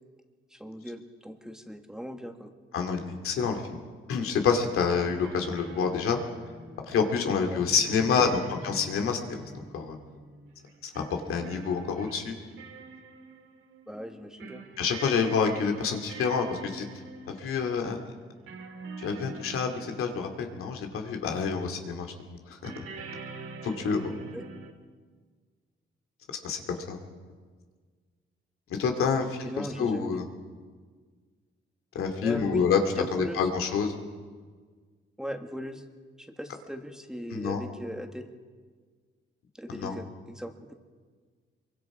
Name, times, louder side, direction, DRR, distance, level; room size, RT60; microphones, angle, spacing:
voice 1, 0.5-2.5 7.5-7.6 8.2-8.4 13.9-14.6 24.3-24.4 29.1-30.2 32.2-32.7 32.9-33.4 35.2-35.8 36.2-38.3 39.6-40.7, equal, 5° right, 5 dB, 1.7 m, -39 dB
voice 2, 2.7-3.8 4.1-6.2 6.9-9.4 9.7-10.0 10.8-11.0 11.3-12.3 14.8-16.8 17.3-18.0 19.0-22.7 23.6-24.1 26.4-27.0 28.8-29.5 29.8-30.3 31.9-32.8 33.1-33.9 37.3-37.6 39.7-39.9, left 6 dB, 90° left, 4 dB, 2.5 m, -28 dB
sound 1, 5.2-21.3 22.6-24.7, right 3 dB, 75° right, 2.7 m, -45 dB
24.5 x 23.5 x 4.9 m, 1.6 s
cardioid pair, 115°, 21 cm